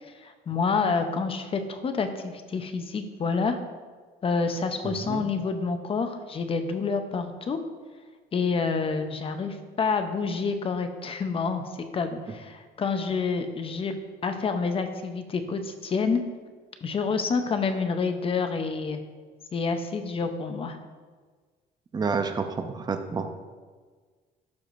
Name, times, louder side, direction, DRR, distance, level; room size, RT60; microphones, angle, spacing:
voice 1, 0.2-3.6 4.2-7.6 8.3-11.6 11.9-13.9 14.2-16.2 16.8-19.0 19.5-20.8, left 4 dB, 35° left, 7 dB, 0.7 m, -28 dB
voice 2, 4.8-5.2 21.9-23.3, right 5 dB, 25° right, 6 dB, 0.6 m, -29 dB
12.0 x 4.9 x 2.6 m, 1.5 s
cardioid pair, 110°, 17 cm